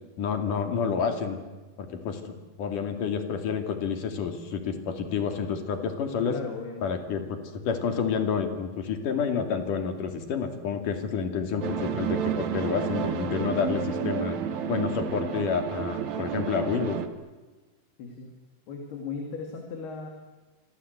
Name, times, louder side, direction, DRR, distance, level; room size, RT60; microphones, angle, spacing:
voice 1, 0.2-1.4 1.8-6.3 6.8-7.4 7.7-14.4 14.7-17.0, left 6 dB, 55° left, 6 dB, 4.0 m, -29 dB
voice 2, 6.3-6.9 18.0-18.3 18.7-20.1, left 4 dB, 80° left, 3 dB, 4.6 m, -37 dB
sound 1, 11.6-17.1, right 8 dB, 60° right, 2.3 m, -30 dB
28.0 x 25.5 x 8.2 m, 1.2 s
omnidirectional pair, 4.5 m